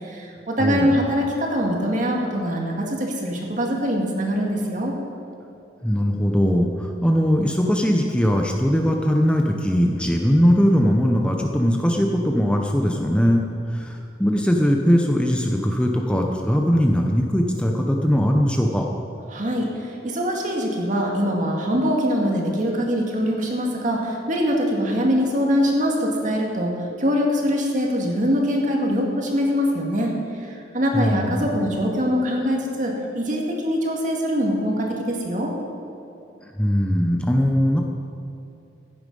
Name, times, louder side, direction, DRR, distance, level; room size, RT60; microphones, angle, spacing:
voice 1, 0.0-4.9 19.3-30.1 30.4-35.5, equal, 45° right, 0 dB, 2.1 m, -23 dB
voice 2, 0.6-0.9 5.8-18.9 30.9-31.5 36.6-37.8, equal, 5° left, 1 dB, 0.8 m, -20 dB
15.5 x 9.7 x 5.5 m, 2.6 s
head